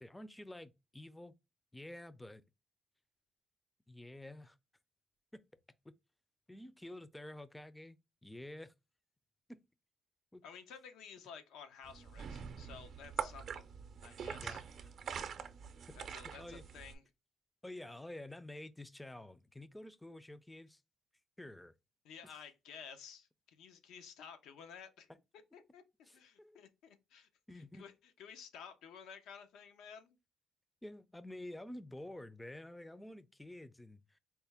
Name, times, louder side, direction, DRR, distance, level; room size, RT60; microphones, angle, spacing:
voice 1, 0.0-1.3 1.7-2.4 3.9-4.6 5.3-5.4 5.8-5.9 6.5-8.7 9.5-9.6 10.3-10.4 14.4-14.9 16.4-16.6 17.6-20.8 21.4-21.7 26.1-26.6 27.5-27.8 30.8-34.2, left 1 dB, 10° left, 0.4 m, -49 dB
voice 2, 10.4-13.7 14.0-14.6 15.9-17.0 22.0-25.1 25.5-25.8 26.1-27.3 27.5-30.2, left 7 dB, 90° left, 0.7 m, -53 dB
sound 1, 11.8-16.9, right 7 dB, 60° right, 0.5 m, -44 dB
4.4 x 2.1 x 3.4 m
cardioid pair, 90°, 0 cm